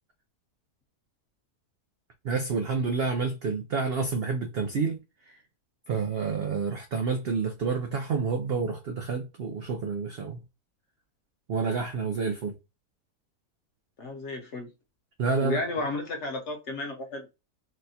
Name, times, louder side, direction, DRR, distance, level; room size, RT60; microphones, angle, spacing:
voice 1, 2.2-5.0 5.3-5.4 5.9-10.4 11.5-12.5 15.2-15.6, right 4 dB, 75° right, 0.5 m, -29 dB
voice 2, 14.0-14.7 15.4-17.3, left 2 dB, 55° left, 1.0 m, -33 dB
4.1 x 2.2 x 2.7 m
omnidirectional pair, 1.6 m